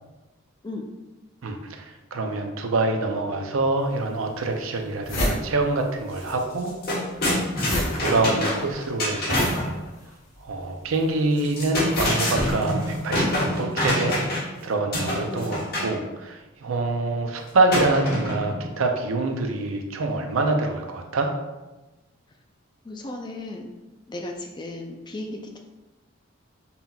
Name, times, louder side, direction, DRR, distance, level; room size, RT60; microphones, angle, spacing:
voice 1, 1.4-6.7 8.0-9.7 10.4-14.2 14.6-21.3, right 2 dB, 80° right, 4 dB, 0.5 m, -25 dB
sound 1, 3.8-3.9 4.4-4.5 4.7-6.3 6.6-13.1, left 1 dB, 75° left, 0.9 m, -31 dB
sound 2, 6.2-6.3 6.6-9.7 11.4-14.6 14.9-16.0 17.7-18.6, left 1 dB, 45° left, 1.2 m, -26 dB
voice 2, 22.8-23.7 24.1-25.6, left 2 dB, 20° left, 2 dB, 0.3 m, -35 dB
5.4 x 2.8 x 2.3 m, 1.1 s
head